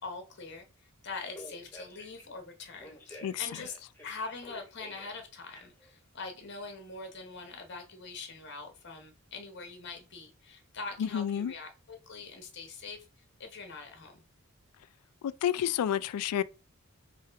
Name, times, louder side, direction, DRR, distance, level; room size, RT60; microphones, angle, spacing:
voice 1, 0.0-3.8 4.0-14.2, left 4 dB, 50° left, 1.0 m, -43 dB
Telephone, 1.3-2.2 2.8-5.2 5.5-5.9, left 1 dB, 10° left, 1.2 m, -49 dB
voice 2, 11.0-11.5 15.2-16.4, left 9 dB, 85° left, 0.3 m, -30 dB
3.5 x 2.7 x 4.5 m
head